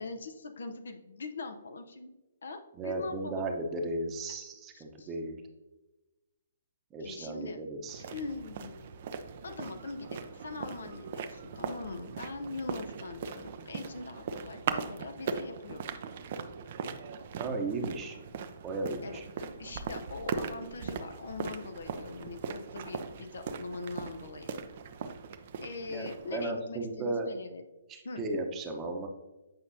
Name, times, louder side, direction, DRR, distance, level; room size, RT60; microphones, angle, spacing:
voice 1, 0.0-2.1 2.4-3.5 4.7-5.1 7.0-7.6 8.1-8.9 9.4-15.8 19.0-24.5 25.6-27.6 28.0-28.2, left 3 dB, 65° left, 6 dB, 0.7 m, -42 dB
voice 2, 2.8-5.4 6.9-8.0 17.4-18.2 18.6-19.2 25.9-27.3 27.9-29.1, right 2 dB, 20° right, 3 dB, 0.9 m, -35 dB
sound 1, 7.9-26.4, right 6 dB, 45° right, 0.5 m, -39 dB
8.0 x 5.1 x 2.7 m, 1.0 s
figure-of-eight pair, 130°, 0 cm